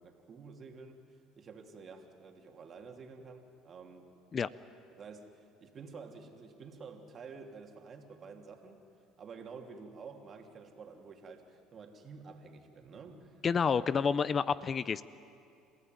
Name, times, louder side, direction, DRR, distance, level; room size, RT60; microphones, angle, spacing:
voice 1, 0.0-4.1 4.9-8.8 9.2-13.4 13.7-13.8 14.1-14.2, right 5 dB, 40° right, 3 dB, 3.0 m, -50 dB
voice 2, 13.4-15.0, left 6 dB, 35° left, 17 dB, 0.6 m, -29 dB
29.5 x 15.5 x 9.4 m, 2.6 s
supercardioid pair, 90°, 0 cm